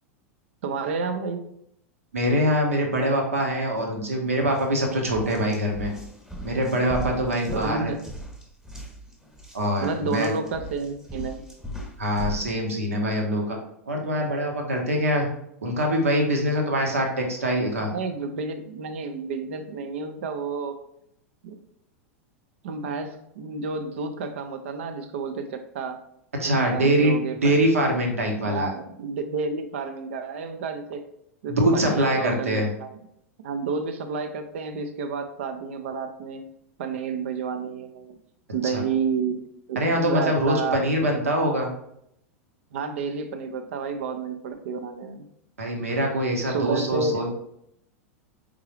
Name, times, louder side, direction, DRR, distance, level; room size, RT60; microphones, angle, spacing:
voice 1, 0.6-1.5 7.5-8.0 9.8-11.4 17.0-17.1 17.8-20.8 21.4-21.6 22.6-26.0 26.4-27.6 28.4-31.0 31.4-32.9 33.4-36.5 36.8-38.2 38.5-39.4 39.7-40.8 42.7-45.3 46.5-47.2, right 5 dB, 60° right, 8 dB, 0.6 m, -30 dB
voice 2, 2.1-5.9 6.4-7.9 9.5-10.3 12.0-13.6 13.9-15.3 15.6-17.9 26.3-28.7 31.5-32.7 38.6-38.8 39.8-41.7 45.6-47.3, equal, 75° right, 2 dB, 1.1 m, -24 dB
sound 1, 4.4-4.6 5.0-12.6, right 1 dB, 5° right, 1.1 m, -38 dB
4.7 x 3.7 x 3.1 m, 0.74 s
figure-of-eight pair, 90°, 8 cm